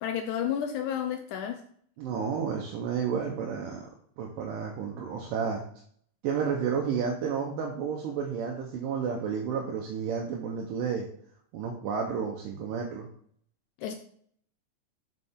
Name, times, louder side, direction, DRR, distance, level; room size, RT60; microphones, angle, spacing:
voice 1, 0.0-1.6 13.8-13.9, left 9 dB, 85° left, 7 dB, 1.8 m, -31 dB
voice 2, 2.0-3.8 4.2-5.6 6.2-11.1 11.5-13.1, right 6 dB, 75° right, 0 dB, 2.4 m, -31 dB
6.7 x 6.6 x 3.6 m, 0.62 s
omnidirectional pair, 4.1 m